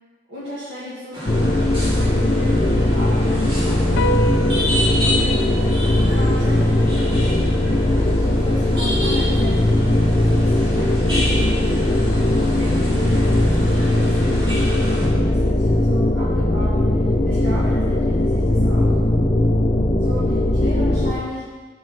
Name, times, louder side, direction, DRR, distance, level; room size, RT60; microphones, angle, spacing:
voice 1, 0.3-4.1 5.0-14.5 15.1-19.0 20.0-21.5, equal, 75° right, -12 dB, 2.1 m, -36 dB
sound 1, 1.1-15.1, equal, 30° right, 1.9 m, -29 dB
sound 2, 1.3-21.1, left 1 dB, 30° left, 0.5 m, -19 dB
sound 3, 4.0-10.7, right 1 dB, 85° left, 0.4 m, -32 dB
6.3 x 4.6 x 5.9 m, 1.4 s
head